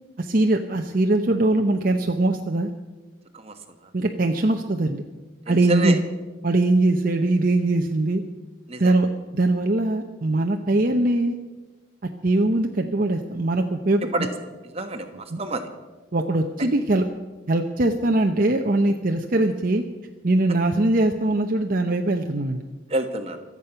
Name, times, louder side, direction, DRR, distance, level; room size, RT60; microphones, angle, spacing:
voice 1, 0.2-2.7 3.9-5.0 5.5-6.0 6.4-8.2 8.8-11.4 12.2-14.1 15.3-15.4 16.1-17.0 17.5-19.8 20.2-22.6, right 2 dB, 45° right, 4 dB, 0.8 m, -21 dB
voice 2, 5.5-6.0 8.7-8.9 14.1-14.3 14.7-15.7 22.9-23.4, right 2 dB, 30° right, 6 dB, 1.3 m, -28 dB
24.5 x 8.5 x 5.7 m, 1.2 s
head